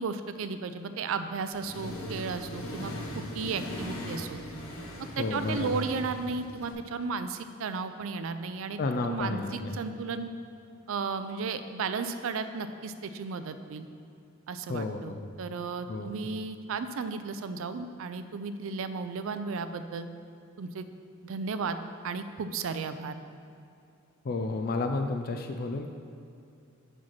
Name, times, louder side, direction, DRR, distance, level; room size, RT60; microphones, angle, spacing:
voice 1, 0.0-2.9 3.3-4.4 5.2-10.3 10.9-13.9 14.5-20.1 20.6-20.8 21.2-21.8 22.0-23.1, right 4 dB, 70° right, 10 dB, 0.4 m, -34 dB
Accelerating revving vroom, 1.5-6.7, left 1 dB, 90° left, 1.1 m, -39 dB
voice 2, 5.2-5.8 8.8-9.8 14.7-15.2 15.9-16.1 24.2-25.9, left 3 dB, 45° left, 5 dB, 0.4 m, -31 dB
5.5 x 5.1 x 5.9 m, 2.6 s
head